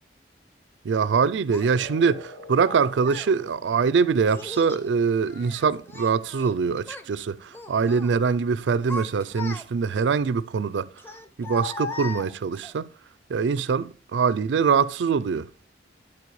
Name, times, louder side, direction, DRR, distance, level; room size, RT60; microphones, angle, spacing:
voice 1, 0.8-10.9 11.4-12.9 13.3-15.7, right 5 dB, 90° right, 0.4 m, -23 dB
Child speech kid speaking, 1.5-1.7 2.6-3.3 4.3-4.9 5.3-6.5 6.8-7.1 7.5-8.1 8.6-10.0 11.0-12.7, left 3 dB, 10° left, 0.5 m, -38 dB
sound 1, 1.7-8.7, left 1 dB, 65° left, 3.2 m, -48 dB
11.0 x 4.2 x 3.1 m
head